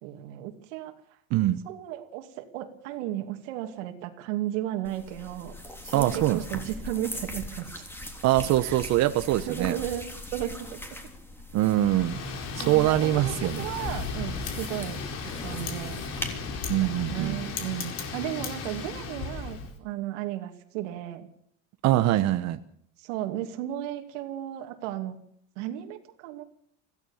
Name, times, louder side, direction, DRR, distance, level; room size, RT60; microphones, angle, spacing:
voice 1, 0.0-0.9 1.6-5.5 5.8-7.8 8.6-8.8 9.5-10.0 10.3-10.8 12.6-15.0 15.4-16.0 16.8-21.3 23.0-25.2 25.6-26.4, right 13 dB, 85° right, 4 dB, 2.7 m, -34 dB
voice 2, 1.3-1.6 5.9-6.6 8.2-9.8 11.5-12.2 12.5-13.7 16.7-17.4 21.8-22.6, right 15 dB, 50° right, 9 dB, 1.1 m, -23 dB
sound 1, 4.8-16.3, left 1 dB, 5° left, 3.4 m, -41 dB
Wind, 11.6-19.7, left 4 dB, 45° left, 4.5 m, -35 dB
25.0 x 16.0 x 7.3 m, 0.67 s
cardioid pair, 150°, 36 cm